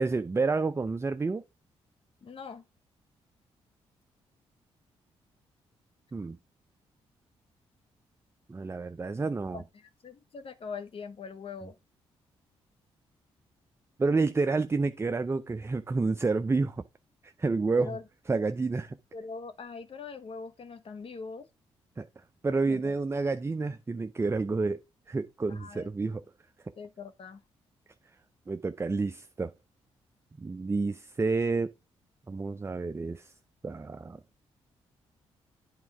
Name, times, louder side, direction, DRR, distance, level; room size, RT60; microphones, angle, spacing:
voice 1, 0.0-1.4 6.1-6.4 8.5-9.6 14.0-16.8 17.2-18.0 18.3-19.0 22.0-22.1 22.4-26.2 28.5-29.5 30.4-31.7 32.3-33.3 33.6-34.2, right 3 dB, 20° right, 0.5 m, -29 dB
voice 2, 2.2-2.6 9.5-11.8 17.8-18.0 19.1-21.5 22.6-23.0 25.5-26.2 26.8-27.4, left 5 dB, 50° left, 1.1 m, -42 dB
8.9 x 3.6 x 4.7 m
supercardioid pair, 55°, 12 cm